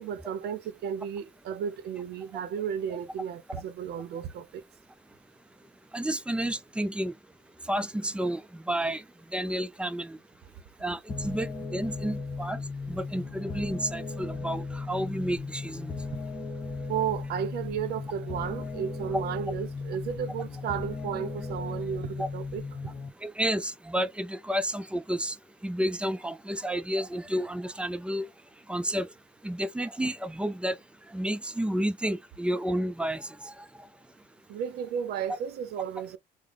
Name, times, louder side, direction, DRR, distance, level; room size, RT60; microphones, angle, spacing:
voice 1, 0.0-4.6 16.9-22.6 34.5-36.2, right 8 dB, 70° right, 0.7 m, -33 dB
voice 2, 5.9-7.1 7.7-9.0 9.3-10.2 10.8-12.6 12.9-15.9 19.1-19.2 22.2-22.3 23.2-25.4 25.6-28.3 28.7-29.1 29.4-30.8 31.1-33.5, right 1 dB, 5° right, 0.5 m, -31 dB
sound 1, 11.1-23.1, left 4 dB, 25° left, 1.0 m, -36 dB
3.6 x 2.1 x 3.4 m
cardioid pair, 110°, 17 cm